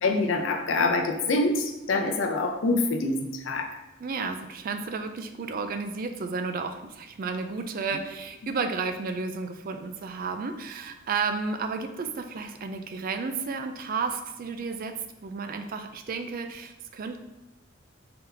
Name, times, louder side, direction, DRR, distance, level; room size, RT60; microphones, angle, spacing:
voice 1, 0.0-3.7, left 3 dB, 75° left, 4 dB, 0.5 m, -25 dB
voice 2, 4.0-14.9 15.2-17.2, right 4 dB, 45° right, 7 dB, 0.4 m, -32 dB
3.7 x 2.9 x 3.3 m, 1.0 s
head